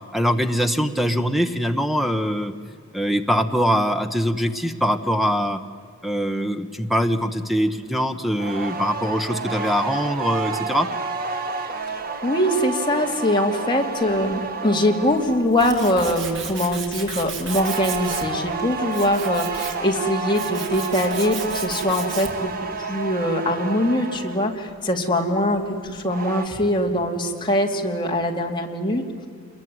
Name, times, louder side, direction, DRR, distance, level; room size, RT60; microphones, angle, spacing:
voice 1, 0.1-2.5 2.9-5.6 6.0-10.9, equal, ahead, 8 dB, 1.0 m, -22 dB
sound 1, 8.4-15.5 17.5-24.6 25.8-26.5, right 4 dB, 45° right, 1.7 m, -30 dB
voice 2, 12.2-22.5 22.8-29.0, left 1 dB, 25° left, 1 dB, 2.6 m, -22 dB
Tools, 15.0-22.5, right 6 dB, 60° right, 3.2 m, -35 dB
27.5 x 22.0 x 9.5 m, 2.1 s
head